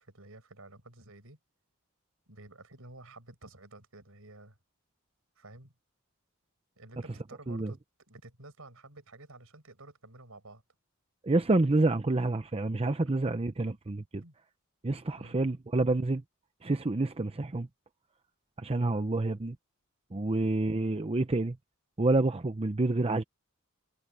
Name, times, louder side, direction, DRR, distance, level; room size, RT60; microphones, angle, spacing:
voice 1, 0.0-1.4 2.3-4.6 5.4-5.7 6.8-7.8 8.1-10.6 14.2-14.3 15.2-15.4 18.9-19.1 20.3-20.5, right 2 dB, 70° right, 7.5 m, -51 dB
voice 2, 11.2-14.2 14.8-16.2 16.6-17.7 18.6-19.6 20.1-21.6 22.0-23.2, right 2 dB, 25° right, 0.7 m, -28 dB
head